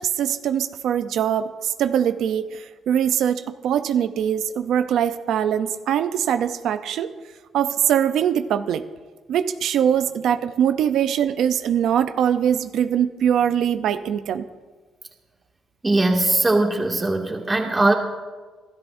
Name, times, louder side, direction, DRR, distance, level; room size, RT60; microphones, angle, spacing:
voice 1, 0.0-7.1 7.5-8.9 9.3-14.4, right 9 dB, 80° right, 9 dB, 0.6 m, -22 dB
voice 2, 15.8-17.9, right 2 dB, 20° right, 1 dB, 2.2 m, -20 dB
24.5 x 12.5 x 2.7 m, 1.4 s
cardioid pair, 90°, 0 cm